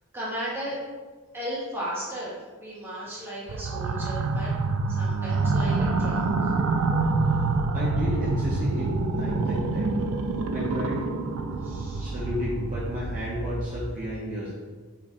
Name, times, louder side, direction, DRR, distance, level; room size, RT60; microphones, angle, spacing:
voice 1, 0.1-0.8 1.3-4.5 4.9-6.5 11.6-12.1, equal, 10° right, -9 dB, 1.3 m, -35 dB
sound 1, 3.5-14.0, right 3 dB, 65° right, 0.3 m, -27 dB
voice 2, 7.7-10.0 10.5-11.0 12.0-14.5, left 1 dB, 35° right, -7 dB, 0.7 m, -32 dB
4.4 x 2.6 x 3.6 m, 1.4 s
head